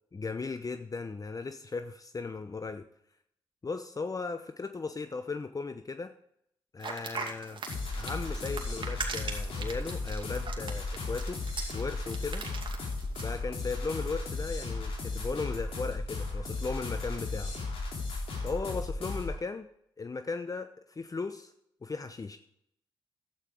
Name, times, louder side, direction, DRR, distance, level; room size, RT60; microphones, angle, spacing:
voice 1, 0.1-2.9 3.6-6.1 6.7-7.6 7.9-11.4 11.7-12.4 13.2-17.5 18.4-19.7 20.0-21.5 21.8-22.4, left 4 dB, 35° left, 9 dB, 0.8 m, -37 dB
sound 1, 6.8-13.3, right 4 dB, 55° right, 2.3 m, -40 dB
sound 2, 7.7-19.4, left 3 dB, 65° left, 3.3 m, -35 dB
11.5 x 9.0 x 4.8 m, 0.73 s
hypercardioid pair, 40°, 10 cm